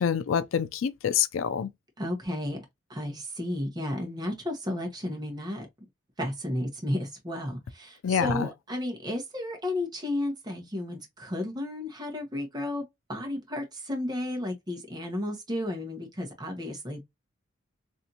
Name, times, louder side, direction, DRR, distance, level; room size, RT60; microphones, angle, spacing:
voice 1, 0.0-1.7 8.0-8.5, left 7 dB, 85° left, 0.4 m, -26 dB
voice 2, 2.0-2.6 2.9-5.7 6.2-12.8 13.1-17.0, left 1 dB, 20° right, 1.0 m, -33 dB
3.3 x 2.7 x 2.7 m
head